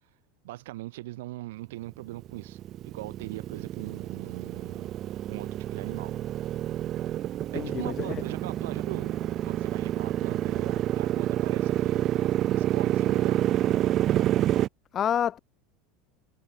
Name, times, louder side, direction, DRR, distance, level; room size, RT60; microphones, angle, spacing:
voice 1, 0.4-4.9 5.3-6.1 7.5-12.2 12.5-13.4, right 18 dB, 80° right, 4.7 m, -41 dB
Motorcycle, 2.0-14.7, right 12 dB, 30° right, 0.6 m, -28 dB
voice 2, 7.5-8.2 14.9-15.4, left 9 dB, 25° left, 2.3 m, -28 dB
supercardioid pair, 165°, 0 cm